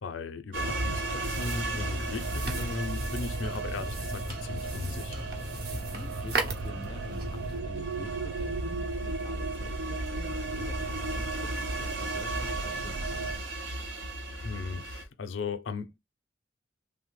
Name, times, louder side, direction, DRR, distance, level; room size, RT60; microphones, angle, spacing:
voice 1, 0.0-5.3 13.9-14.1 14.3-16.0, left 4 dB, 85° left, 0.5 m, -37 dB
sound 1, 0.5-15.0, right 1 dB, 90° right, 0.7 m, -36 dB
sound 2, 0.6-13.4, right 4 dB, 70° right, 0.3 m, -37 dB
sound 3, 1.2-7.6, right 2 dB, 55° right, 0.8 m, -37 dB
voice 2, 5.7-13.5, left 1 dB, 25° left, 0.3 m, -47 dB
3.3 x 2.0 x 3.1 m
head